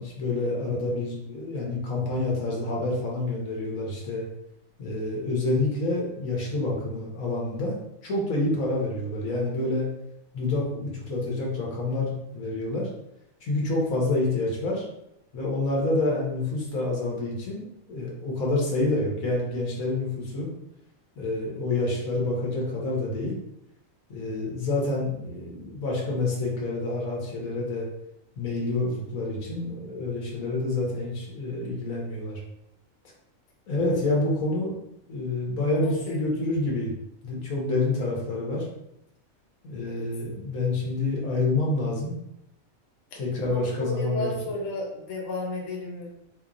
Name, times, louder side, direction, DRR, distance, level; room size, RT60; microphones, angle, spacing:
voice 1, 0.0-4.2 4.8-7.8 8.0-9.9 10.3-12.9 13.4-14.8 15.3-20.5 21.2-23.4 24.1-27.9 28.4-32.4 33.7-34.7 35.1-36.9 37.2-38.7 39.6-42.2 43.1-44.3, left 2 dB, 85° left, -3 dB, 1.4 m, -28 dB
voice 2, 35.8-36.2 39.9-40.0 43.4-46.1, left 2 dB, 65° left, -2 dB, 1.0 m, -33 dB
3.8 x 2.9 x 2.5 m, 0.82 s
omnidirectional pair, 1.4 m